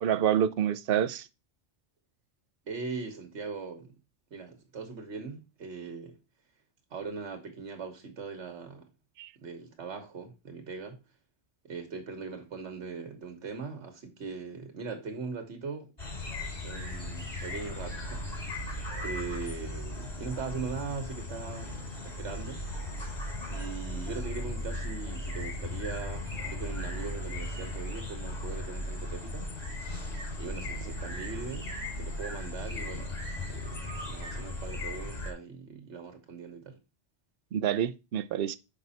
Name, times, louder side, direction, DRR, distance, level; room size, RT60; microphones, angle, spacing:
voice 1, 0.0-1.3 9.2-9.3 37.5-38.6, right 9 dB, 60° right, 0.7 m, -27 dB
voice 2, 2.7-3.9 4.3-6.2 6.9-8.9 9.4-11.0 11.6-15.9 16.6-18.4 19.0-22.6 23.5-29.5 30.4-33.2 33.5-36.8, right 4 dB, 85° right, 1.5 m, -40 dB
sound 1, 16.0-35.3, left 1 dB, 35° left, 2.3 m, -37 dB
6.0 x 5.4 x 4.1 m
omnidirectional pair, 1.1 m